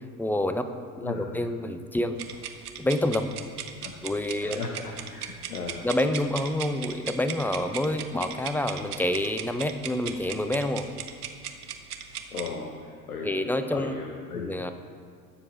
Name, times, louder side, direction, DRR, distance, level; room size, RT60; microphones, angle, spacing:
voice 1, 0.2-0.7 1.0-2.2 2.8-3.3 4.0-4.6 5.8-10.8 13.2-13.9 14.3-14.7, left 1 dB, 5° left, 9 dB, 0.6 m, -27 dB
voice 2, 1.0-1.4 3.8-3.9 4.4-5.8 12.3-14.5, left 4 dB, 85° left, 2 dB, 1.1 m, -36 dB
sound 1, 2.2-12.5, right 8 dB, 80° right, 1.0 m, -38 dB
20.5 x 7.1 x 3.4 m, 2.1 s
figure-of-eight pair, 75°, 44 cm